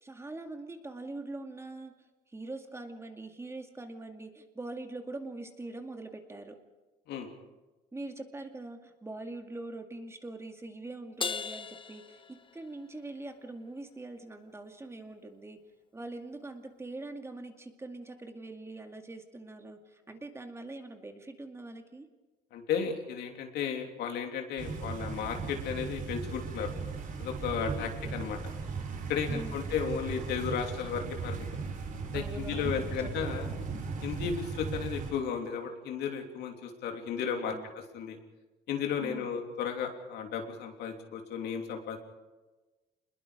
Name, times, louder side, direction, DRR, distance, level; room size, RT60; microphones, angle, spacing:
voice 1, 0.0-1.9 2.3-6.6 7.9-15.6 15.9-22.1 27.8-28.3 29.3-29.6 32.1-33.1 37.4-37.6 39.0-39.3, right 2 dB, 15° right, 5 dB, 2.2 m, -43 dB
Crash cymbal, 11.2-12.9, left 6 dB, 30° left, 0.9 m, -37 dB
voice 2, 22.5-26.7 27.2-28.4 29.1-31.5 32.1-33.5 34.0-38.2 38.7-42.0, left 7 dB, 75° left, 3 dB, 3.2 m, -34 dB
sound 1, 24.6-35.1, right 4 dB, 50° right, 3.7 m, -37 dB
27.0 x 21.0 x 5.2 m, 1.2 s
cardioid pair, 110°, 17 cm